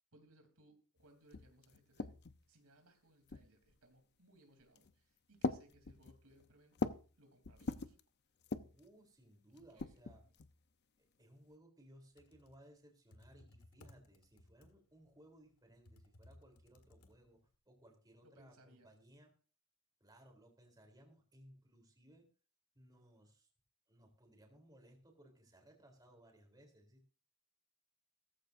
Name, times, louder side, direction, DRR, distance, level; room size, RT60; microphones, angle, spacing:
voice 1, 0.1-2.2 2.5-8.0 9.7-10.0 10.2-10.3 18.2-18.9, right 1 dB, 90° right, 5 dB, 3.3 m, -67 dB
sound 1, 1.0-1.1 1.3-2.5 3.3-3.8 4.6-4.9 5.4-7.1 7.4-8.0 8.4-8.9 9.6-10.5, left 3 dB, 50° left, 0.7 m, -42 dB
voice 2, 8.6-10.2 11.2-19.3 20.0-22.3 22.7-23.5 23.9-27.1, right 1 dB, 20° right, 2 dB, 3.5 m, -63 dB
Computer keyboard, 12.0-17.6, left 1 dB, 90° left, 1.7 m, -63 dB
16.5 x 14.5 x 2.6 m, 0.36 s
head